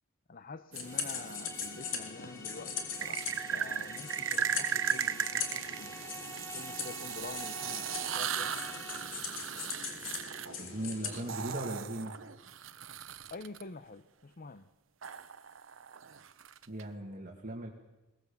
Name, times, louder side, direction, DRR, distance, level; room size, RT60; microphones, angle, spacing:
voice 1, 0.3-5.9 6.5-8.6 13.3-14.6, left 4 dB, 45° left, 12 dB, 0.7 m, -47 dB
sound 1, 0.7-12.0, left 6 dB, 80° left, 3.5 m, -41 dB
sound 2, 0.7-1.7 3.0-13.6 15.0-16.8, right 8 dB, 80° right, 0.9 m, -37 dB
sound 3, 0.8-9.3, left 2 dB, 15° left, 1.8 m, -49 dB
voice 2, 10.6-12.1 16.7-17.7, right 1 dB, 45° right, 1 dB, 2.3 m, -38 dB
22.0 x 20.0 x 7.1 m, 1.0 s
head